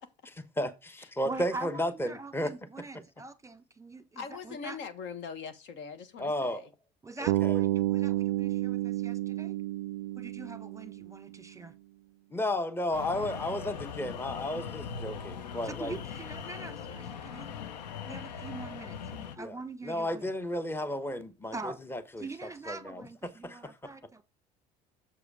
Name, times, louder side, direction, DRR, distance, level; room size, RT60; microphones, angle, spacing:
voice 1, 0.6-2.5 6.2-6.6 7.2-7.6 12.3-15.9 19.4-19.5 19.8-22.3 22.7-23.1 23.4-23.7, left 1 dB, 10° left, 1.1 m, -33 dB
voice 2, 1.2-4.8 7.0-9.5 10.1-11.7 15.6-17.5 18.1-20.3 21.5-21.8 22.2-24.2, right 3 dB, 15° right, 1.2 m, -43 dB
voice 3, 4.1-6.7, left 6 dB, 60° left, 1.5 m, -41 dB
Bass guitar, 7.3-11.4, right 16 dB, 75° right, 0.4 m, -30 dB
sound 1, 12.9-19.4, left 6 dB, 90° left, 0.8 m, -40 dB
7.4 x 4.9 x 4.8 m
hypercardioid pair, 75°, 21 cm